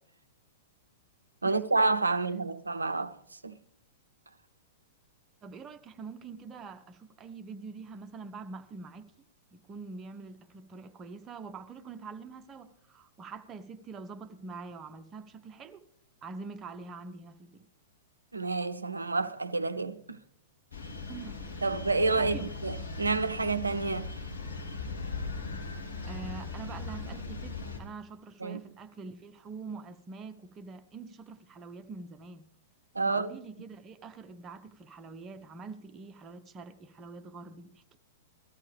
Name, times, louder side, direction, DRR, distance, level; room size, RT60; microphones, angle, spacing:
voice 1, 1.4-3.6 18.3-20.2 21.6-22.4 22.6-24.2 28.4-28.6 32.9-33.3, right 3 dB, 80° right, 0.5 m, -29 dB
voice 2, 5.4-9.1 9.5-15.8 16.2-17.7 21.1-21.4 22.2-22.5 25.6-25.8 26.1-32.5 33.1-38.0, right 4 dB, 20° right, 0.8 m, -45 dB
sound 1, 20.7-27.8, left 3 dB, 65° left, 2.1 m, -38 dB
17.5 x 13.0 x 3.4 m
figure-of-eight pair, 105°, 0 cm